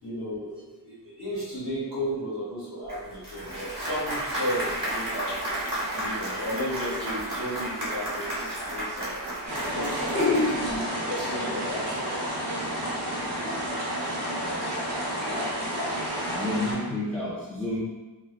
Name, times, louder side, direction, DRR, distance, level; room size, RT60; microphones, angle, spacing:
voice 1, 0.0-5.3 5.9-9.2 9.7-10.8 11.1-12.1, equal, 70° left, -13 dB, 1.4 m, -34 dB
Applause, 2.9-10.8, right 1 dB, 50° right, 1.0 m, -32 dB
sound 1, 9.5-16.7, equal, 80° right, 0.6 m, -30 dB
voice 2, 10.0-10.5 16.3-17.8, left 2 dB, 5° left, -9 dB, 0.5 m, -28 dB
2.6 x 2.2 x 2.2 m, 1.2 s
wide cardioid pair, 45°, 42 cm